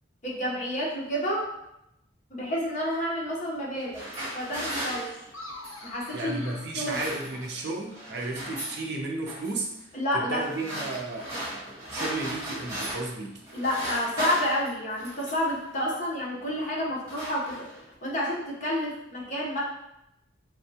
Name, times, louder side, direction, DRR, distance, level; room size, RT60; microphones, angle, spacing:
voice 1, 0.2-1.5 2.3-4.0 4.3-5.1 5.8-6.4 6.7-7.0 9.9-10.4 13.5-17.7 18.0-19.6, equal, 40° left, -4 dB, 0.9 m, -29 dB
sound 1, 3.7-5.9 6.6-7.6 7.9-8.8 9.3-9.7 10.4-13.2 13.4-15.6 16.3-16.6 16.8-17.9, right 1 dB, 15° right, 1.3 m, -36 dB
sound 2, 5.3-7.8, left 2 dB, 85° left, 0.7 m, -45 dB
voice 2, 6.1-9.7 10.1-13.4, right 2 dB, 55° right, 0 dB, 0.6 m, -34 dB
4.3 x 2.2 x 2.7 m, 0.83 s
head